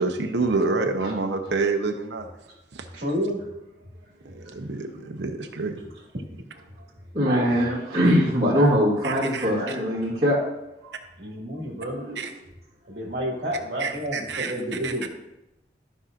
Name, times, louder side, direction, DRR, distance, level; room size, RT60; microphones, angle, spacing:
voice 1, 0.0-2.3 2.7-2.8 4.2-5.8 9.0-9.4 12.2-12.3 13.8-14.5 14.8-15.1, right 3 dB, 85° right, 4 dB, 0.8 m, -27 dB
voice 2, 2.9-3.4 6.1-6.4 11.2-12.0 12.9-15.1, equal, 60° right, -3 dB, 1.9 m, -30 dB
voice 3, 7.1-10.4 10.8-10.9 11.9-12.2, equal, 35° right, -10 dB, 2.2 m, -22 dB
14.5 x 5.5 x 2.5 m, 0.92 s
head